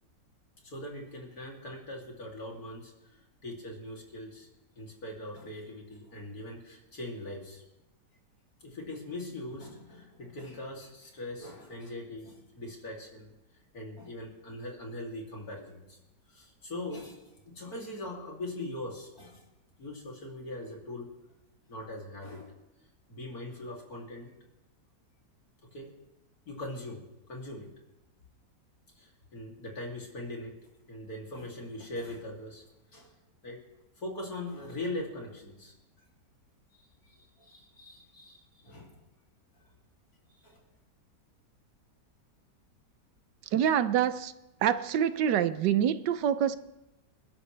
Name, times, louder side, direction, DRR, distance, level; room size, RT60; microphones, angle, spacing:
voice 1, 0.6-4.5 4.8-7.6 8.6-13.3 13.7-16.0 16.3-17.2 17.5-19.5 19.8-21.1 21.7-22.6 23.1-24.3 25.7-25.9 26.5-27.7 29.0-32.6 32.9-33.1 33.4-33.6 34.0-35.7 36.7-39.0 40.4-40.6, left 1 dB, 55° left, 3.4 m, -41 dB
voice 2, 43.5-44.3 44.6-46.6, right 9 dB, 85° right, 1.4 m, -26 dB
28.0 x 12.0 x 3.4 m
omnidirectional pair, 1.8 m